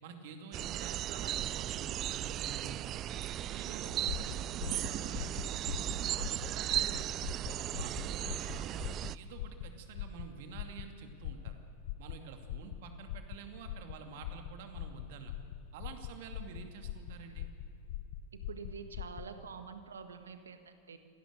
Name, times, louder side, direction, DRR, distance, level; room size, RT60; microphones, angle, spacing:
voice 1, 0.0-3.1 3.5-7.1 7.5-11.6 12.0-15.3 15.7-17.5, right 6 dB, 50° right, 5 dB, 2.5 m, -49 dB
sound 1, 0.5-9.2, right 12 dB, 35° right, 0.4 m, -36 dB
sound 2, 3.9-19.3, left 11 dB, 50° left, 1.1 m, -43 dB
voice 2, 18.5-21.0, right 5 dB, 70° right, 8 dB, 1.6 m, -46 dB
27.0 x 18.0 x 6.7 m, 2.8 s
figure-of-eight pair, 90°, 0 cm